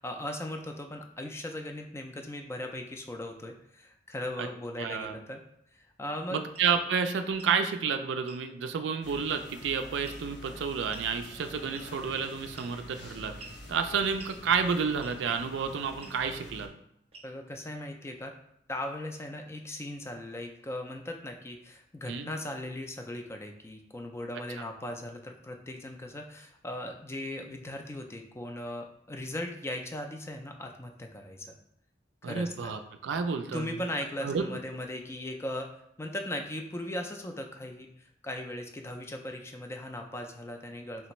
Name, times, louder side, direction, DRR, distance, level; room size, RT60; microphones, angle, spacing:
voice 1, 0.0-5.4 5.7-6.4 17.2-18.3 18.7-31.5 32.2-32.7 33.5-35.7 36.0-37.9 38.2-41.1, left 1 dB, 15° left, 4 dB, 0.3 m, -38 dB
voice 2, 4.8-5.2 6.3-13.3 13.7-16.7 22.1-22.3 32.2-33.7 34.2-34.5, right 6 dB, 75° right, 7 dB, 0.4 m, -30 dB
sound 1, 6.5-6.7 7.3-7.6 8.3-8.4 10.1-10.4 10.9-11.1 11.7-12.1 12.6-12.9 13.4-13.6 14.2-14.4 15.0-15.3 16.0-16.2 17.1-17.5, right 3 dB, 35° right, 0.6 m, -49 dB
sound 2, 9.0-16.7, left 1 dB, 65° left, 0.7 m, -47 dB
3.4 x 3.2 x 3.0 m, 0.73 s
head